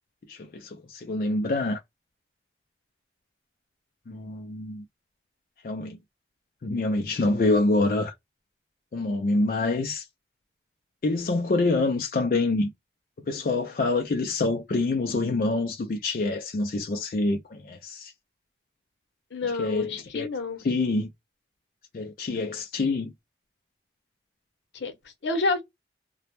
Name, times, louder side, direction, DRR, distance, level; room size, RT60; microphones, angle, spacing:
voice 1, 0.3-1.8 4.1-4.8 5.6-6.0 6.6-8.1 8.9-10.0 11.0-12.7 13.3-18.1 19.4-20.3 20.6-21.1 21.9-23.1, left 2 dB, 50° left, 0.3 m, -26 dB
voice 2, 19.3-20.6 24.7-25.6, left 3 dB, 80° left, 0.7 m, -29 dB
2.1 x 2.0 x 2.9 m
head